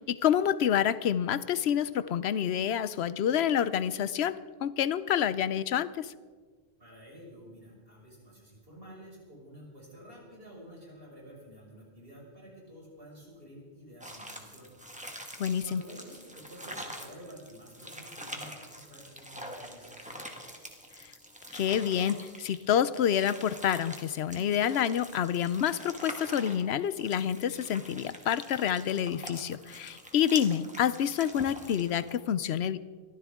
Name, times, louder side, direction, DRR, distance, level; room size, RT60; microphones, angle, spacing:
voice 1, 0.0-6.1 15.4-15.8 21.5-32.8, left 9 dB, 85° left, 16 dB, 0.9 m, -28 dB
voice 2, 6.8-14.7 15.6-20.3, equal, 65° right, -4 dB, 6.2 m, -50 dB
sound 1, 14.0-32.1, equal, 5° right, 1.7 m, -45 dB
23.5 x 14.5 x 3.7 m, 1.5 s
omnidirectional pair, 1.1 m